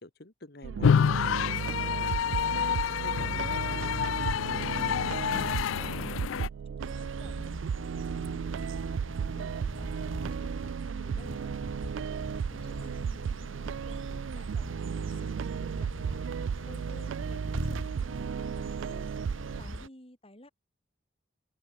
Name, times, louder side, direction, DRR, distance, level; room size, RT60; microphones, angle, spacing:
voice 1, 0.0-4.2 7.4-7.5 12.8-13.0, left 2 dB, 50° left, 1.7 m, -49 dB
sound 1, 0.6-19.6, right 7 dB, 70° right, 0.3 m, -35 dB
sound 2, 0.8-6.5, left 7 dB, 80° left, 0.4 m, -28 dB
voice 2, 5.1-7.5 7.9-9.0 9.4-11.5 12.0-16.2 16.6-19.1 19.6-20.5, left 1 dB, 30° left, 4.6 m, -54 dB
sound 3, 6.8-19.9, right 1 dB, 85° right, 2.9 m, -40 dB
open air
head